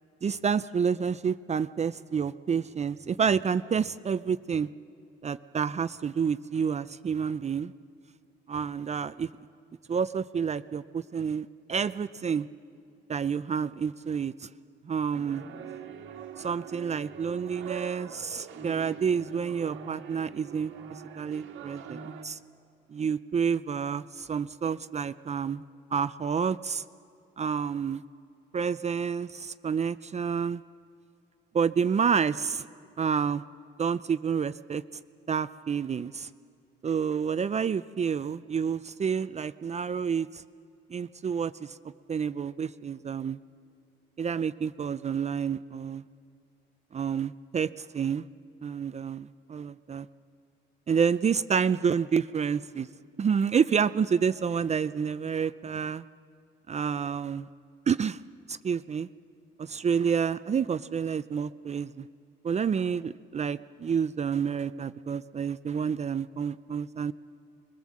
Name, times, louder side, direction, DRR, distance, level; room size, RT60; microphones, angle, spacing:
voice 1, 0.2-4.7 5.2-7.7 8.5-9.3 9.9-12.5 13.1-14.5 14.8-15.4 16.4-22.4 22.9-25.6 25.9-26.8 27.4-28.0 28.5-30.6 31.5-32.6 33.0-33.4 33.8-34.8 35.3-36.3 36.8-40.4 40.9-41.8 42.1-43.4 44.2-46.0 46.9-48.3 48.6-50.1 50.9-52.9 53.2-56.0 56.7-57.5 57.9-58.2 58.5-59.1 59.6-62.1 62.4-67.1, right 6 dB, 35° right, 14 dB, 0.5 m, -29 dB
sound 1, 15.1-22.3, right 7 dB, 80° right, 1.5 m, -43 dB
22.0 x 21.5 x 7.4 m, 2.5 s
cardioid pair, 90°, 20 cm